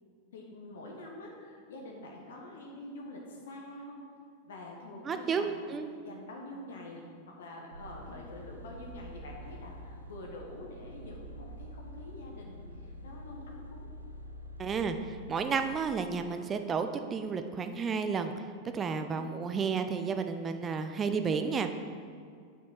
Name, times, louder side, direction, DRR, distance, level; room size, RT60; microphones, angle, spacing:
voice 1, 0.3-4.0 4.4-5.6 6.0-13.9 18.9-19.7, left 1 dB, 60° left, 0 dB, 1.2 m, -46 dB
voice 2, 5.1-5.9 14.6-18.3 18.7-21.7, right 5 dB, 25° right, 8 dB, 0.5 m, -32 dB
sound 1, 7.7-15.8, equal, 85° right, 0.8 m, -46 dB
7.1 x 6.2 x 5.9 m, 2.2 s
figure-of-eight pair, 90°, 0 cm